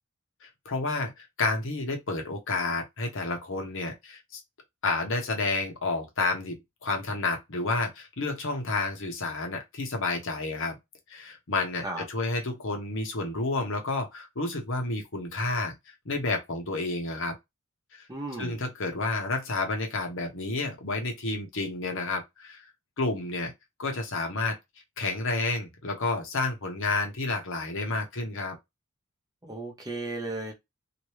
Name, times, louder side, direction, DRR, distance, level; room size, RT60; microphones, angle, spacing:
voice 1, 0.4-4.4 4.8-10.7 11.1-15.7 16.0-17.3 17.9-18.1 18.4-22.6 23.0-23.5 23.8-24.6 25.0-28.6, left 3 dB, 65° left, 1.0 m, -30 dB
voice 2, 18.1-18.6 29.4-30.5, right 2 dB, 20° right, 1.0 m, -35 dB
2.9 x 2.6 x 3.2 m
head